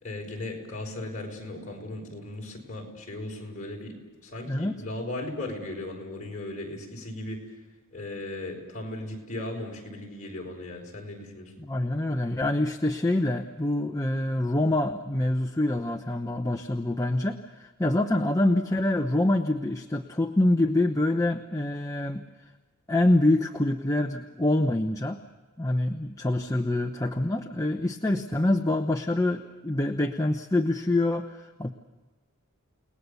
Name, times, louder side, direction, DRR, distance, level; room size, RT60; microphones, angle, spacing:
voice 1, 0.0-3.9 4.2-7.4 7.9-11.5, left 2 dB, 35° left, -1 dB, 5.6 m, -37 dB
voice 2, 4.5-4.8 11.6-22.2 22.9-25.2 25.6-31.7, left 1 dB, 15° left, 4 dB, 0.8 m, -26 dB
30.0 x 19.0 x 7.0 m, 1.3 s
head